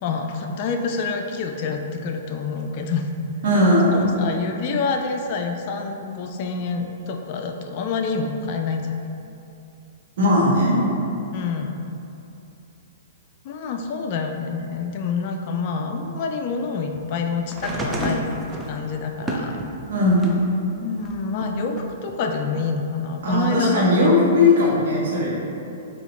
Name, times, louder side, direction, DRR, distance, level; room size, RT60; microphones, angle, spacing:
voice 1, 0.0-3.1 3.9-9.0 11.3-11.9 13.4-19.6 20.8-24.1 25.2-25.3, left 4 dB, 45° left, 4 dB, 0.3 m, -27 dB
voice 2, 3.4-4.1 10.2-10.8 19.9-20.3 23.2-25.4, left 1 dB, 60° right, -7 dB, 1.3 m, -18 dB
sound 1, 17.5-20.5 21.0-22.1 23.2-23.3, right 1 dB, 15° right, 0.5 m, -31 dB
4.8 x 2.8 x 3.2 m, 2.7 s
figure-of-eight pair, 115°, 0 cm